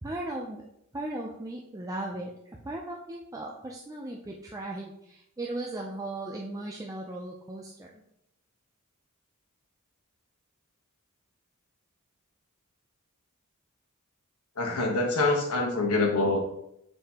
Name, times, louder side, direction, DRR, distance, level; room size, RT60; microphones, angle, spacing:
voice 1, 0.0-0.6 0.9-8.0, right 1 dB, 15° right, -1 dB, 0.5 m, -37 dB
voice 2, 14.6-16.4, left 2 dB, 85° left, 2 dB, 1.2 m, -25 dB
6.6 x 5.4 x 2.9 m, 0.78 s
head